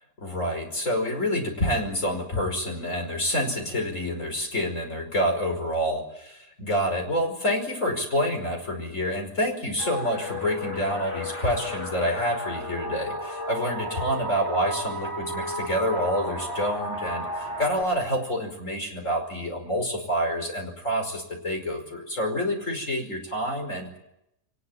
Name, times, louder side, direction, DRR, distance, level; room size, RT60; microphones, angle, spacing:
voice 1, 0.2-24.0, equal, 50° left, 3 dB, 5.6 m, -28 dB
sound 1, 9.8-17.8, equal, 15° left, 3.7 m, -33 dB
23.5 x 20.0 x 8.9 m, 0.80 s
omnidirectional pair, 1.7 m